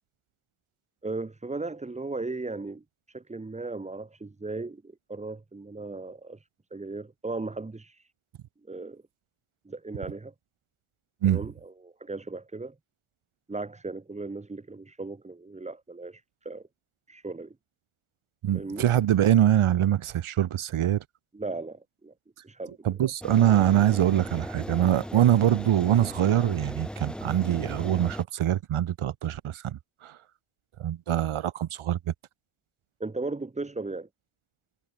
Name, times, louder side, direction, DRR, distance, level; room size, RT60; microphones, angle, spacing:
voice 1, 1.0-8.1 8.7-9.0 9.6-10.3 11.3-12.8 13.5-16.7 17.1-17.6 18.5-18.9 21.3-22.1 22.4-22.9 33.0-34.1, right 3 dB, 15° right, 0.9 m, -37 dB
voice 2, 18.4-21.0 22.8-30.2 30.8-32.1, right 11 dB, 80° right, 1.3 m, -24 dB
sound 1, 23.2-28.2, equal, ahead, 4.2 m, -38 dB
wide cardioid pair, 110°, 49 cm